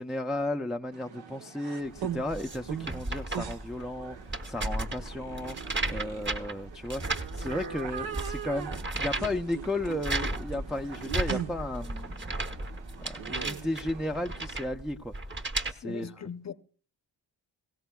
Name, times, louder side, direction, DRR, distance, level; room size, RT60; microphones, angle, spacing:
voice 1, 0.0-4.2 4.4-5.6 5.9-7.0 7.4-12.4 13.0-15.1 15.7-16.1, left 1 dB, ahead, 0.5 m, -34 dB
sound 1, 0.9-14.6, right 8 dB, 80° right, 1.1 m, -41 dB
sound 2, 2.0-15.7, right 2 dB, 25° right, 1.0 m, -35 dB
voice 2, 15.8-16.5, left 7 dB, 35° left, 0.7 m, -39 dB
18.5 x 16.5 x 2.3 m
cardioid pair, 65°, 47 cm